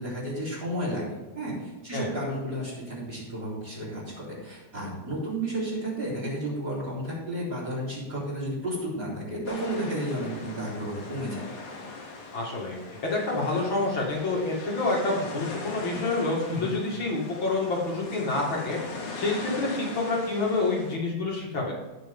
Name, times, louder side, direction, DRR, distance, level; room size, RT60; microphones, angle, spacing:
voice 1, 0.0-11.5 16.5-16.7, right 1 dB, 35° right, -7 dB, 4.4 m, -32 dB
sound 1, 9.5-21.0, left 3 dB, 90° left, 3.5 m, -40 dB
voice 2, 12.3-18.8 19.1-21.8, left 3 dB, 45° left, -2 dB, 2.6 m, -28 dB
18.0 x 6.3 x 3.6 m, 1.1 s
omnidirectional pair, 3.4 m